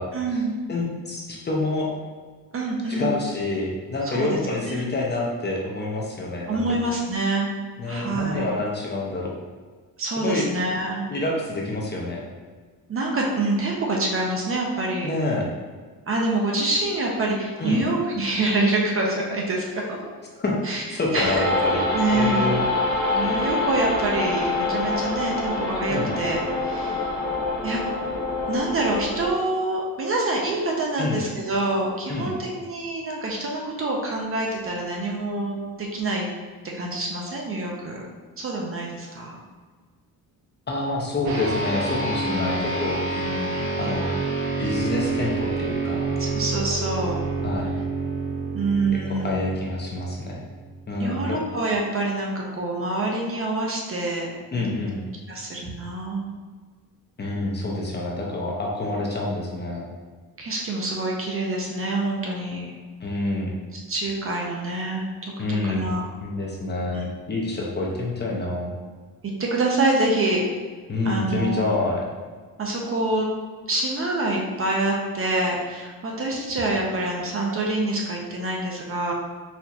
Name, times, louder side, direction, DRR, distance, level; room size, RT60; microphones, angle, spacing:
voice 1, 0.1-0.6 2.5-3.2 4.0-4.4 4.7-4.9 6.5-7.5 7.9-8.5 10.0-11.1 12.9-15.1 16.1-20.0 20.6-20.8 21.1-21.5 21.9-22.5 23.1-27.1 27.6-27.8 28.5-36.3 36.7-38.0 38.4-39.4 42.3-42.8 43.2-43.7 46.2-47.2 48.5-49.5 51.0-54.7 55.3-56.3 60.4-62.7 63.7-66.0 66.9-67.0 69.4-70.5 71.0-71.7 72.6-73.3 73.7-79.1, right 2 dB, 35° right, -1 dB, 0.5 m, -26 dB
voice 2, 0.7-1.9 2.9-6.8 7.8-9.3 10.2-10.5 11.1-12.2 15.0-15.5 17.6-17.8 20.0-20.1 20.4-21.8 22.1-22.6 25.9-26.1 31.0-31.2 32.1-32.3 40.7-43.3 43.8-44.1 44.6-46.0 47.4-47.7 48.9-50.4 50.9-51.4 54.5-55.0 57.2-59.9 63.0-63.6 65.4-65.9 66.2-68.7 70.9-72.0, left 2 dB, 30° left, -3 dB, 0.6 m, -27 dB
sound 1, 21.1-29.3, left 2 dB, 45° left, 1.2 m, -26 dB
sound 2, 41.2-50.9, right 3 dB, 80° right, 0.8 m, -28 dB
4.2 x 2.8 x 2.4 m, 1.5 s
cardioid pair, 130°, 37 cm